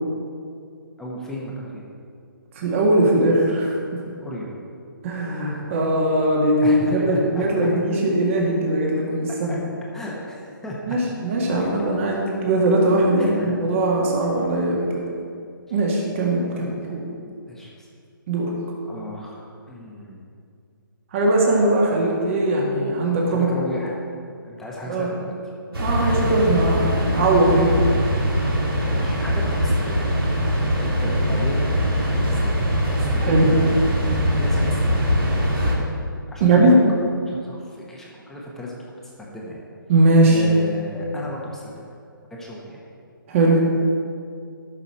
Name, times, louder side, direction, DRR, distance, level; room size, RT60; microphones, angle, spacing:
voice 1, 1.0-1.9 4.2-4.5 6.6-7.7 9.5-9.6 9.9-10.7 11.6-11.7 13.2-13.6 17.5-17.9 18.9-20.2 23.3-24.0 24.4-25.4 26.0-26.3 28.9-30.0 30.6-31.8 32.3-32.7 33.0-35.0 36.3-36.7 37.3-39.6 40.2-41.8 42.3-42.8, left 1 dB, 5° left, -4 dB, 1.1 m, -35 dB
voice 2, 2.5-4.0 5.0-9.6 10.9-15.0 15.7-17.1 18.3-18.5 21.1-23.5 24.9-25.1 25.8-28.0 33.2-33.5 36.4-36.7 39.9-40.4 43.3-43.6, right 2 dB, 35° right, -2 dB, 1.8 m, -20 dB
sound 1, 25.7-35.8, equal, 85° right, 2.6 m, -22 dB
13.0 x 6.4 x 4.3 m, 2.3 s
hypercardioid pair, 155°, 12 cm